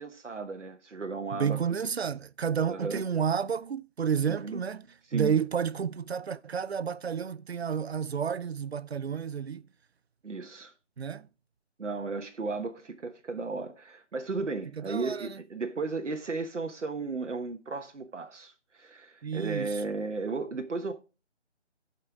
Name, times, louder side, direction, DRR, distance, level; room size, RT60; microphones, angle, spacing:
voice 1, 0.0-1.6 2.7-3.0 4.3-4.6 5.1-5.3 10.2-10.7 11.8-20.9, right 3 dB, 90° right, 1.3 m, -35 dB
voice 2, 1.3-4.9 5.1-9.6 11.0-11.3 14.8-15.4 19.2-19.7, right 7 dB, 65° right, 0.5 m, -30 dB
15.0 x 5.6 x 3.5 m
figure-of-eight pair, 170°, 35 cm